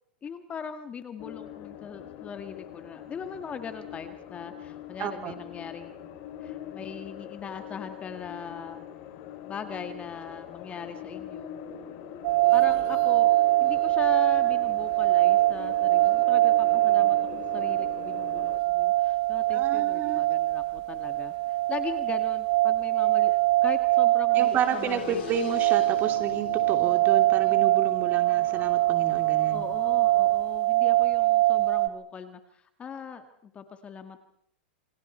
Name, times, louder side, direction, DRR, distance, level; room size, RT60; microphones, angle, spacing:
voice 1, 0.2-8.8 9.4-11.6 12.5-25.4 29.5-34.2, left 6 dB, 20° left, 8 dB, 1.9 m, -40 dB
sound 1, 1.2-18.6, left 10 dB, 50° left, 3.2 m, -42 dB
voice 2, 5.0-5.3 19.5-20.2 24.3-29.6, right 8 dB, 30° right, 6 dB, 3.0 m, -31 dB
sound 2, 12.2-31.9, right 17 dB, 55° right, 1.2 m, -23 dB
sound 3, 24.4-30.4, left 9 dB, 70° left, 5.0 m, -43 dB
28.0 x 25.0 x 4.5 m, 0.68 s
hypercardioid pair, 130°, 6 cm